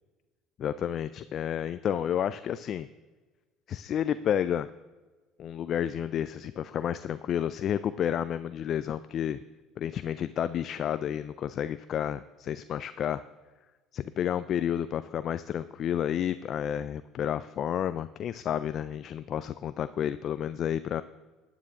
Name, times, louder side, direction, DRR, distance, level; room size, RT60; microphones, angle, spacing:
voice 1, 0.6-2.9 3.7-4.7 5.4-9.4 9.8-13.2 13.9-21.0, left 9 dB, 55° left, 14 dB, 0.4 m, -31 dB
12.0 x 9.0 x 3.7 m, 1.3 s
supercardioid pair, 80°, 0 cm